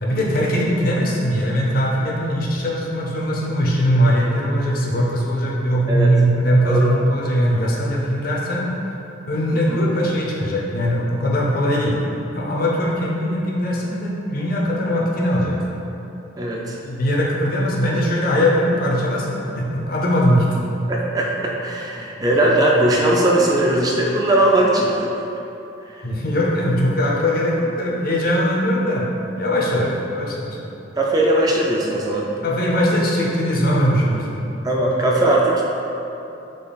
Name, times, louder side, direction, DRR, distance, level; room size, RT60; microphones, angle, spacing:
voice 1, 0.0-8.7 9.3-12.0 12.3-15.6 16.8-20.5 26.0-29.1 29.4-30.6 32.4-34.4, equal, 50° left, -3 dB, 0.6 m, -20 dB
voice 2, 16.4-16.8 20.9-25.1 25.9-26.0 29.7-29.9 31.0-32.3 34.6-35.7, right 1 dB, 20° right, -2 dB, 0.3 m, -19 dB
3.9 x 3.1 x 4.0 m, 2.9 s
head